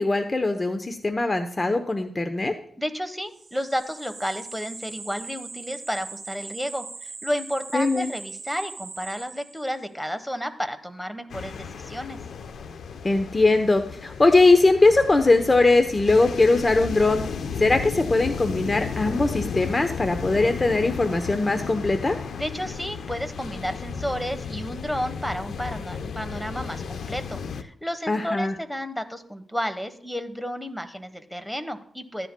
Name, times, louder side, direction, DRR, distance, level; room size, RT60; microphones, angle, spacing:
voice 1, 0.0-2.5 7.7-8.1 13.0-17.3 17.6-22.2 28.1-28.5, left 2 dB, 30° left, 7 dB, 0.9 m, -20 dB
voice 2, 2.8-12.2 22.4-32.3, equal, ahead, 9 dB, 1.2 m, -32 dB
sound 1, 3.3-9.8, right 3 dB, 40° right, 1.4 m, -40 dB
sound 2, 11.3-27.6, left 6 dB, 80° left, 0.7 m, -34 dB
14.5 x 10.0 x 2.3 m, 0.65 s
cardioid pair, 75°, 0 cm